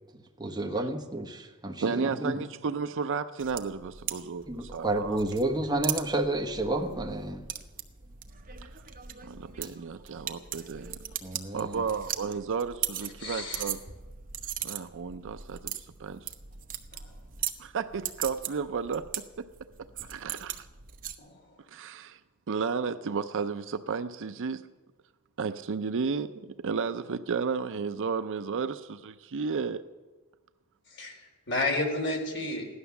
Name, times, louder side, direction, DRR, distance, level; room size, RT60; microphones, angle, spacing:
voice 1, 0.4-2.4 4.5-7.4 11.2-11.8, right 2 dB, 20° right, 2 dB, 1.2 m, -30 dB
voice 2, 1.8-5.2 9.2-11.0 11.5-13.8 14.6-16.3 17.6-19.5 19.8-20.7 21.7-22.2 22.5-24.7 25.4-29.8, right 5 dB, 60° right, 11 dB, 0.5 m, -33 dB
sound 1, 3.4-21.1, right 10 dB, 40° right, 0.9 m, -39 dB
voice 3, 13.2-13.6 21.2-21.4 30.9-32.7, left 2 dB, 55° left, 2 dB, 3.2 m, -31 dB
16.0 x 11.5 x 7.0 m, 1.3 s
head